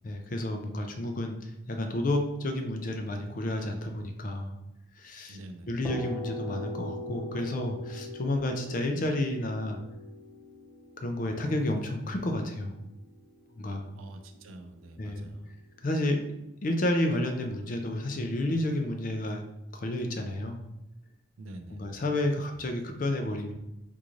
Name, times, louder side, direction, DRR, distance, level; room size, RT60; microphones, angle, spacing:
voice 1, 0.0-4.5 5.0-5.4 5.7-9.8 11.0-12.7 13.6-13.8 15.0-15.3 15.8-16.2 16.6-19.4 19.7-20.6 21.7-23.5, left 1 dB, 40° left, 4 dB, 0.4 m, -30 dB
voice 2, 5.3-5.7 13.9-15.5 21.4-21.8, right 1 dB, 85° right, 7 dB, 0.4 m, -46 dB
sound 1, 5.8-13.6, left 1 dB, 5° right, 0.9 m, -41 dB
3.6 x 2.5 x 3.0 m, 0.88 s
head